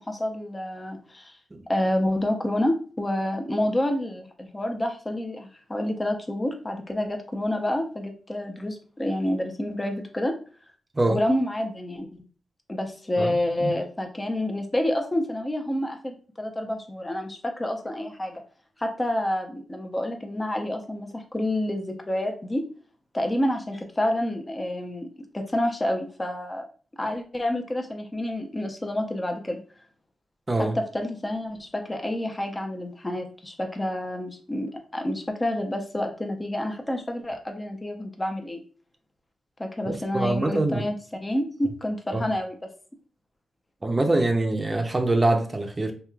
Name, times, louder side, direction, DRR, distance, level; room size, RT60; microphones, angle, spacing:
voice 1, 0.0-1.3 1.7-10.4 11.1-12.2 12.7-18.4 18.8-22.6 23.1-26.6 27.0-29.6 30.6-38.6 39.6-41.0 41.2-42.7, left 1 dB, 25° left, 0.7 m, -28 dB
voice 2, 13.2-13.7 30.5-30.8 39.8-40.9 42.1-42.2 43.8-45.9, right 2 dB, 25° right, 0.6 m, -24 dB
3.0 x 2.8 x 2.3 m
cardioid pair, 60°, 0 cm